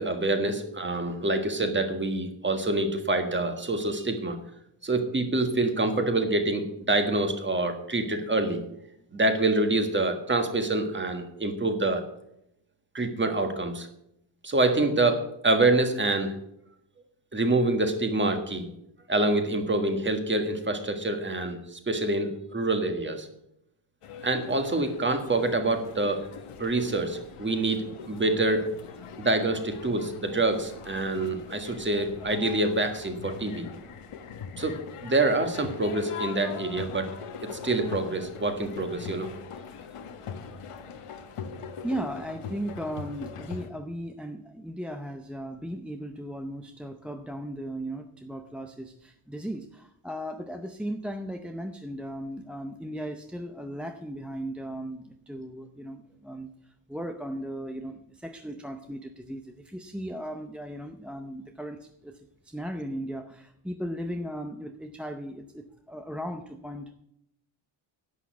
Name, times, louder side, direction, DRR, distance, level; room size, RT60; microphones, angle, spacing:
voice 1, 0.0-4.4 4.8-8.6 9.1-12.0 12.9-13.9 14.4-16.3 17.3-18.7 19.1-23.3 24.2-26.2 26.6-28.7 29.2-33.7 34.6-37.1 37.4-39.3, right 2 dB, 20° right, 6 dB, 1.7 m, -26 dB
sound 1, 24.0-43.7, left 6 dB, 85° left, 1.5 m, -41 dB
voice 2, 41.8-66.9, equal, ahead, 5 dB, 0.6 m, -37 dB
11.0 x 8.5 x 8.2 m, 0.77 s
wide cardioid pair, 170°, 50 cm